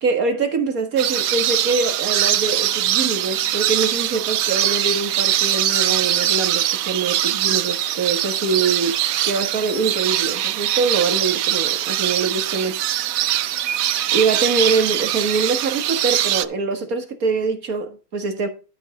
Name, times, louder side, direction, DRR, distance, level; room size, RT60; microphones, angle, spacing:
voice 1, 0.0-9.0 9.2-12.8 14.1-18.5, right 4 dB, 55° right, 2.0 m, -23 dB
sound 1, 1.0-16.4, right 12 dB, 70° right, 0.8 m, -22 dB
12.5 x 5.4 x 3.8 m
omnidirectional pair, 1.9 m